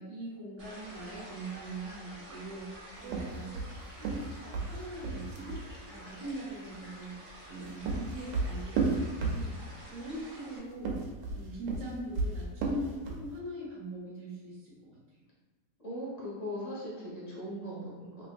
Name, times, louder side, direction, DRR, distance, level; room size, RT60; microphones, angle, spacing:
voice 1, 0.0-5.6 5.9-7.2 7.4-11.0 11.3-15.0, right 1 dB, 55° right, -7 dB, 1.1 m, -42 dB
sound 1, 0.6-10.6, right 1 dB, 35° right, 1.0 m, -49 dB
sound 2, 3.0-5.7 7.4-9.8 10.7-13.3, right 3 dB, 85° right, 1.3 m, -33 dB
voice 2, 15.8-18.3, equal, 25° left, -8 dB, 0.9 m, -39 dB
3.3 x 3.0 x 2.5 m, 1.3 s
omnidirectional pair, 1.9 m